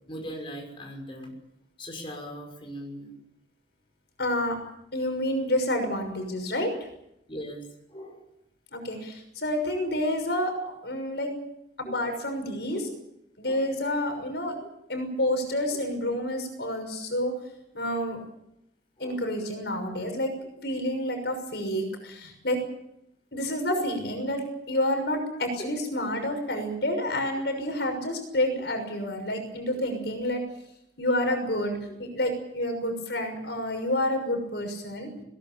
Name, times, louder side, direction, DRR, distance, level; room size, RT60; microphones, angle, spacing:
voice 1, 0.1-1.3 1.8-3.2 7.3-7.6 7.9-8.2 11.8-12.0 13.4-13.7 14.6-14.7 19.0-19.2 25.6-25.7 26.0-26.1 29.7-29.8 31.9-32.0, equal, 30° left, 2 dB, 6.0 m, -39 dB
voice 2, 4.2-4.6 4.9-6.7 8.7-11.3 11.8-12.9 13.4-14.6 14.9-17.4 17.7-18.2 19.0-20.3 20.6-22.6 23.3-30.4 31.0-35.1, left 1 dB, 70° left, 5 dB, 6.3 m, -29 dB
21.5 x 19.0 x 9.0 m, 0.81 s
head